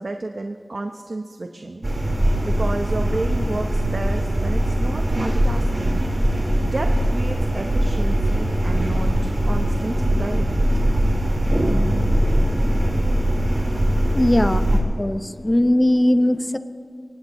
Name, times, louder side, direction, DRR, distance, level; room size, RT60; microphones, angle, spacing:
voice 1, 0.0-1.9 2.4-6.1 6.6-11.0, right 2 dB, 60° right, 5 dB, 0.8 m, -31 dB
sound 1, 1.8-14.8, right 1 dB, 40° right, 4.1 m, -21 dB
voice 2, 14.1-16.6, left 1 dB, 25° left, 10 dB, 0.8 m, -19 dB
23.5 x 19.5 x 3.1 m, 2.3 s
wide cardioid pair, 65°, 0 cm